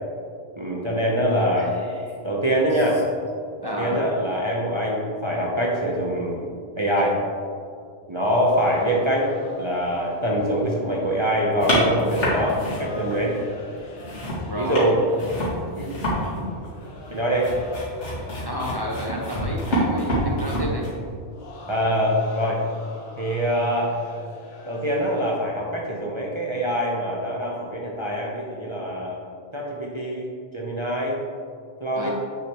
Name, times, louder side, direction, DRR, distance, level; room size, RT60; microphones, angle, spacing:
voice 1, 0.5-1.7 2.2-3.0 3.6-6.4 6.8-7.1 8.1-9.3 9.6-13.4 14.6-14.9 15.8-16.1 17.1-17.5 21.7-22.6 23.2-23.9 24.7-29.2 29.5-30.3 30.5-31.2 31.8-32.1, equal, 30° right, -3 dB, 0.8 m, -24 dB
voice 2, 1.6-2.2 2.7-2.8 3.6-4.0 14.5-14.8 15.2-15.3 16.3-16.6 18.4-20.9 31.9-32.1, equal, 20° left, -3 dB, 0.9 m, -32 dB
sound 1, 8.2-25.4, left 2 dB, 60° left, 1.2 m, -44 dB
sound 2, 11.6-13.4 13.7-20.9, equal, 80° left, 2.4 m, -27 dB
8.2 x 6.9 x 3.1 m, 2.2 s
omnidirectional pair, 1.2 m